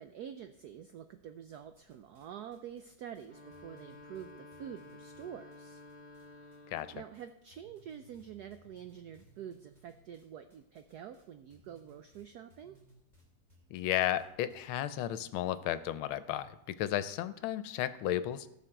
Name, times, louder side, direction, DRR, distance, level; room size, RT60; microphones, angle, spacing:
voice 1, 0.0-5.8 6.9-12.8, right 9 dB, 85° right, 9 dB, 0.8 m, -47 dB
sound 1, 1.5-2.3 2.5-6.2 6.5-7.2 7.5-15.3, right 1 dB, 20° right, 2.8 m, -63 dB
sound 2, 3.2-7.2, left 2 dB, 35° left, 2.0 m, -53 dB
voice 2, 13.7-18.5, left 12 dB, 80° left, 14 dB, 1.5 m, -33 dB
16.5 x 6.4 x 4.5 m, 0.82 s
omnidirectional pair, 2.3 m